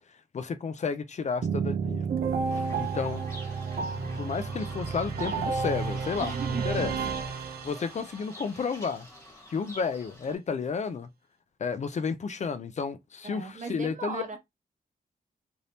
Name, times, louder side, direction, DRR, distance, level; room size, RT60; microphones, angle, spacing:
voice 1, 0.3-2.0 2.8-3.2 4.2-6.9 7.6-9.1 9.5-11.1 11.6-14.4, left 5 dB, 50° left, 0.4 m, -32 dB
sound 1, 1.4-8.2, right 5 dB, 85° right, 0.6 m, -31 dB
Fowl / Bird, 2.5-10.4, left 1 dB, 20° left, 1.3 m, -47 dB
voice 2, 6.2-7.1 8.6-8.7 13.3-14.4, right 5 dB, 55° right, 1.1 m, -38 dB
3.3 x 2.7 x 2.7 m
wide cardioid pair, 105°, 16 cm